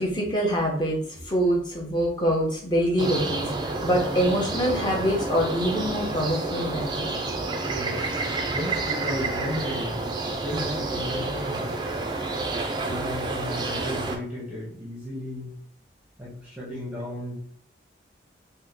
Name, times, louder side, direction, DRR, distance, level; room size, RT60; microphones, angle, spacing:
voice 1, 0.0-7.1, equal, 25° left, -1 dB, 0.8 m, -25 dB
sound 1, 3.0-14.2, right 3 dB, 25° right, 0.3 m, -29 dB
voice 2, 7.7-12.0 12.8-15.6 16.2-17.4, left 1 dB, 5° right, -6 dB, 0.7 m, -34 dB
2.9 x 2.1 x 3.5 m, 0.64 s
head